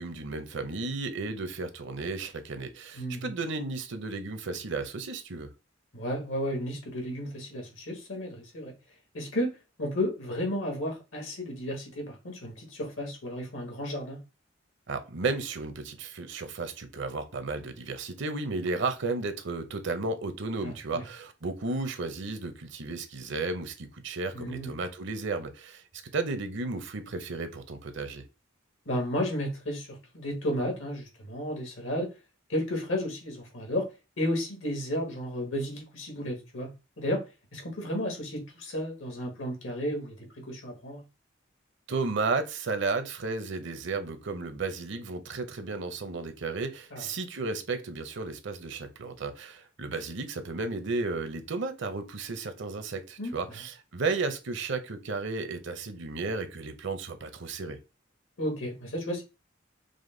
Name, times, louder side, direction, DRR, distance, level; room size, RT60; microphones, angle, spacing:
voice 1, 0.0-5.5 14.9-25.8 26.1-28.2 41.9-57.8, right 3 dB, 65° right, 0.7 m, -33 dB
voice 2, 2.9-3.3 5.9-8.7 9.1-14.2 20.6-21.0 24.3-24.7 28.8-32.1 32.5-33.9 34.2-36.7 37.0-37.2 37.5-41.0 46.9-47.0 53.2-53.6 58.4-59.2, equal, 80° left, 1.6 m, -33 dB
5.0 x 2.2 x 3.8 m
head